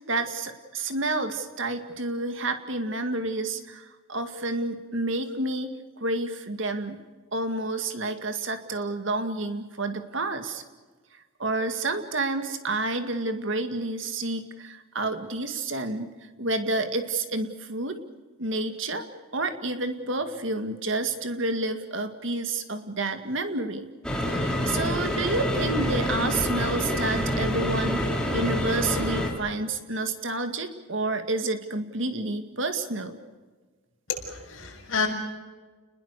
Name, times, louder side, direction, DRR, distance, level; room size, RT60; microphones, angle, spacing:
voice 1, 0.0-5.7 6.0-7.0 7.3-10.6 11.4-18.0 18.4-19.1 19.3-23.9 24.3-33.2, right 2 dB, 60° right, 7 dB, 2.1 m, -29 dB
sound 1, 24.0-29.3, equal, 5° left, 3.6 m, -27 dB
voice 2, 34.1-35.1, left 5 dB, 65° left, -1 dB, 6.4 m, -29 dB
29.5 x 21.0 x 6.7 m, 1.4 s
head